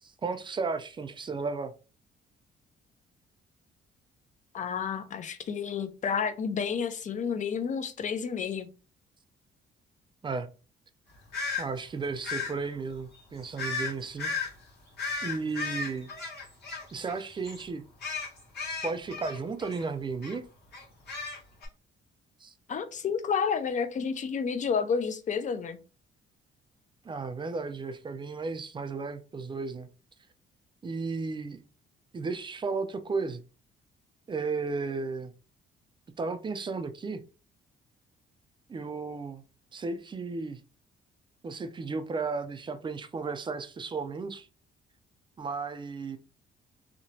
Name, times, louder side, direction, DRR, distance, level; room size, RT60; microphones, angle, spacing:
voice 1, 0.0-1.7 10.2-10.5 11.6-14.3 15.2-16.1 16.9-17.8 18.8-20.4 22.4-22.5 27.0-29.9 30.8-31.6 32.1-33.4 34.3-35.3 36.2-37.2 38.7-39.4 39.7-40.6 41.4-44.5 45.4-46.2, right 4 dB, 25° right, 0.3 m, -34 dB
voice 2, 4.5-8.7 22.7-25.8, left 6 dB, 40° left, 0.4 m, -30 dB
sound 1, 11.3-11.6 12.2-12.5 13.6-13.9 14.2-14.5 15.0-17.2 17.4-17.6 18.0-19.8 20.2-20.4 20.7-21.7, left 4 dB, 60° left, 1.5 m, -34 dB
2.9 x 2.1 x 2.7 m
cardioid pair, 90°, 20 cm